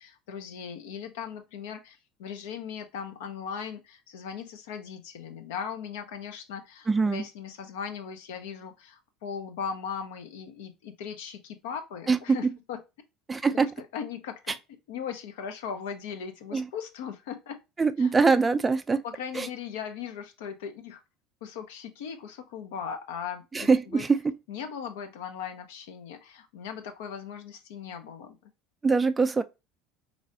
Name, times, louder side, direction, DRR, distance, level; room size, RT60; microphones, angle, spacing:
voice 1, 0.0-12.8 13.5-14.6 14.9-17.6 18.0-18.1 19.0-21.0 21.4-24.1 24.5-28.4, left 7 dB, 70° left, 0.6 m, -38 dB
voice 2, 6.9-7.2 12.1-12.2 13.3-13.7 14.5-14.6 16.5-16.6 17.8-19.0 19.3-19.5 23.5-24.2 28.8-29.4, right 4 dB, 20° right, 0.4 m, -23 dB
4.0 x 3.1 x 2.5 m
hypercardioid pair, 70°, 0 cm